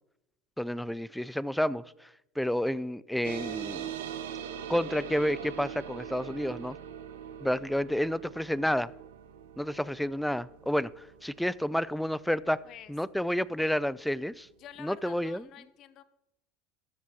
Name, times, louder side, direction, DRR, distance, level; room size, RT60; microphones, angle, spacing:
voice 1, 0.6-2.1 2.4-3.9 4.7-6.8 7.4-8.9 9.6-12.6 12.9-14.5 14.8-15.4, equal, ahead, 0.3 m, -30 dB
sound 1, 3.2-14.2, right 9 dB, 85° right, 0.9 m, -42 dB
voice 2, 13.3-13.8 14.6-16.0, left 11 dB, 50° left, 0.8 m, -49 dB
12.5 x 5.7 x 6.1 m
supercardioid pair, 95°, 0 cm